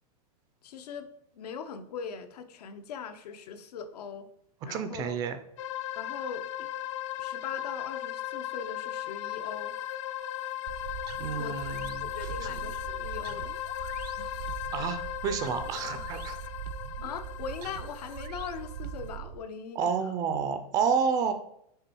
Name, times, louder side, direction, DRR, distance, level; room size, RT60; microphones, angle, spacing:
voice 1, 0.6-4.3 4.6-5.2 5.9-6.7 7.2-9.7 11.4-11.6 12.0-13.5 13.8-14.5 17.0-20.1, left 6 dB, 80° left, 9 dB, 0.8 m, -41 dB
voice 2, 4.7-5.4 11.2-12.1 14.7-16.4 19.8-21.3, right 6 dB, 20° right, 9 dB, 0.3 m, -29 dB
sound 1, 5.6-19.2, left 13 dB, 50° left, 0.4 m, -37 dB
sound 2, 10.7-19.4, right 10 dB, 85° right, 0.5 m, -41 dB
6.8 x 3.5 x 4.5 m, 0.73 s
supercardioid pair, 165°, 20 cm